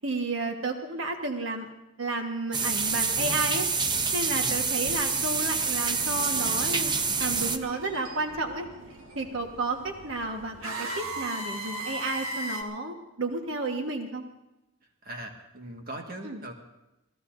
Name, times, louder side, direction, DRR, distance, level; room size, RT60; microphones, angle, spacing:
voice 1, 0.0-1.7 2.0-6.9 7.2-8.7 9.1-14.2 16.2-16.4, right 2 dB, 70° right, 3 dB, 1.5 m, -32 dB
sound 1, 2.5-7.6, right 4 dB, 20° right, 0.6 m, -27 dB
sound 2, 4.7-12.6, right 1 dB, 90° right, 1.7 m, -39 dB
voice 2, 15.0-16.5, right 1 dB, 45° right, 2 dB, 1.8 m, -40 dB
27.0 x 17.5 x 2.7 m, 0.96 s
head